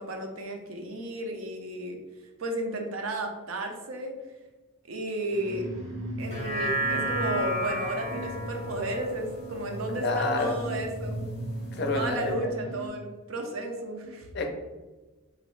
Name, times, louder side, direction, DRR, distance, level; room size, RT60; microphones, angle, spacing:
voice 1, 0.0-2.0 2.4-4.1 4.9-5.7 6.2-11.3 11.9-14.3, right 1 dB, 75° right, 3 dB, 0.5 m, -33 dB
sound 1, 5.3-12.9, right 1 dB, 30° right, 0.9 m, -37 dB
sound 2, 6.2-10.8 11.2-11.3, equal, 30° left, 0.8 m, -33 dB
voice 2, 9.9-10.6 11.7-12.4 14.3-14.5, left 2 dB, 50° left, 3 dB, 0.4 m, -28 dB
3.0 x 2.6 x 3.1 m, 1.2 s
head